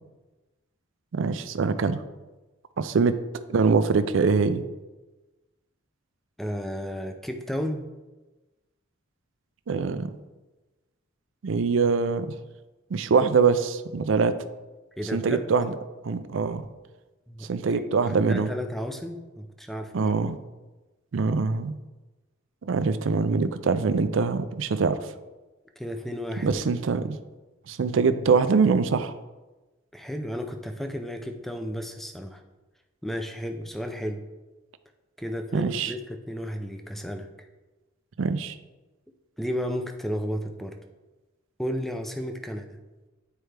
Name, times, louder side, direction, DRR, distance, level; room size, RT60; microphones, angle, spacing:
voice 1, 1.1-2.0 2.8-4.7 9.7-10.1 11.4-12.3 12.9-14.3 15.1-15.7 16.0-16.6 17.5-18.5 19.9-20.4 21.1-21.8 22.6-25.0 26.4-27.2 27.7-29.1 35.5-35.9 38.2-38.6, right 5 dB, 65° right, 11 dB, 0.4 m, -23 dB
voice 2, 6.4-7.9 15.0-15.5 17.3-17.5 17.7-20.1 25.8-26.6 29.9-32.4 33.0-34.2 35.2-37.3 39.4-40.7 41.6-42.8, equal, ahead, 5 dB, 0.5 m, -33 dB
9.7 x 4.5 x 3.4 m, 1.2 s
head